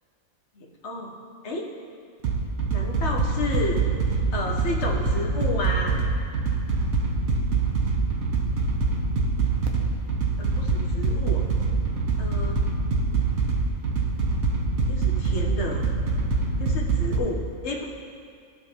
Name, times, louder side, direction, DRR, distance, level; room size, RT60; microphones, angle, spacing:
voice 1, 0.6-1.2 1.4-1.7 2.7-3.8 4.3-6.0 10.4-11.4 12.2-12.6 14.9-15.9 16.6-17.8, left 2 dB, 55° left, -1 dB, 1.1 m, -31 dB
sound 1, 2.2-17.2, right 4 dB, 75° right, 1.2 m, -24 dB
14.0 x 5.1 x 2.9 m, 2.3 s
omnidirectional pair, 1.5 m